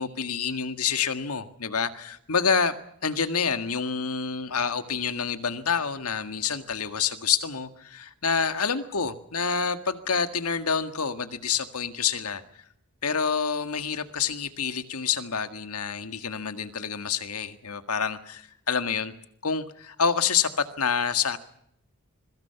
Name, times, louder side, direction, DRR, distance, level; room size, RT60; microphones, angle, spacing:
voice 1, 0.0-2.7 3.0-12.4 13.0-19.1 19.4-21.4, left 6 dB, 85° left, 9 dB, 1.8 m, -27 dB
26.5 x 23.5 x 5.9 m, 0.72 s
head